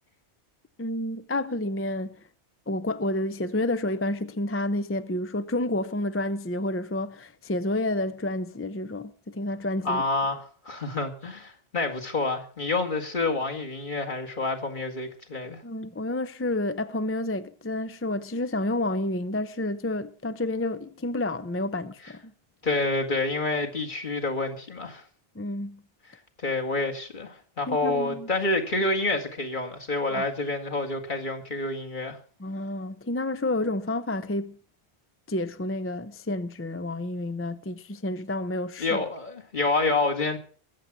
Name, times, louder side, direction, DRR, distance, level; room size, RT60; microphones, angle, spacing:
voice 1, 0.8-2.2 2.7-10.0 15.6-22.3 25.4-25.8 27.7-28.3 30.1-30.2 32.4-34.6 35.3-39.0, left 1 dB, 20° left, 0.4 m, -30 dB
voice 2, 9.8-15.6 22.6-25.0 26.4-32.2 38.8-40.4, left 2 dB, 45° left, 2.1 m, -28 dB
22.0 x 7.6 x 6.0 m
omnidirectional pair, 1.2 m